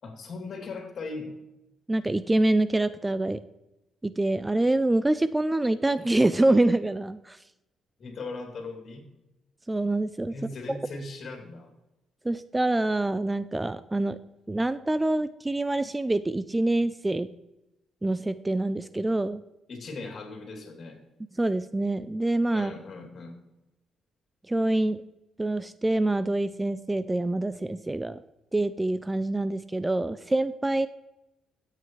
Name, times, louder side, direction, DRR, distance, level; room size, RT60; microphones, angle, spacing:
voice 1, 0.0-1.3 8.0-9.0 10.3-11.7 19.7-21.0 22.5-23.3, left 3 dB, 55° left, 2 dB, 3.0 m, -38 dB
voice 2, 1.9-3.4 4.0-7.4 9.7-10.3 12.2-14.2 14.5-17.3 18.0-19.4 21.4-22.7 24.5-25.0 25.4-28.2 28.5-30.9, right 2 dB, 15° right, 14 dB, 0.4 m, -26 dB
12.5 x 8.4 x 3.2 m, 0.94 s
cardioid pair, 90°, 0 cm